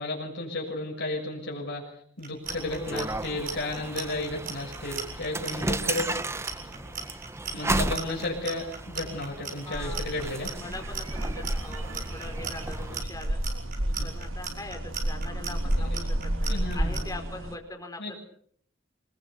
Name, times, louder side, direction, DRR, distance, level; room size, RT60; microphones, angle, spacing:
voice 1, 0.0-1.9 2.2-6.9 7.5-10.5 14.0-14.1 16.5-17.0 18.0-18.2, left 2 dB, 60° left, -1 dB, 6.8 m, -33 dB
Clock, 2.2-17.0, right 6 dB, 45° right, 7.5 m, -37 dB
sound 1, 2.4-13.0, right 2 dB, 15° right, 0.9 m, -34 dB
voice 2, 2.7-3.0 9.6-10.1 10.4-13.4 14.0-18.2, left 2 dB, 20° left, 4 dB, 5.0 m, -42 dB
sound 2, 9.7-17.5, right 1 dB, 80° right, 2.0 m, -31 dB
26.0 x 21.5 x 6.9 m, 0.63 s
head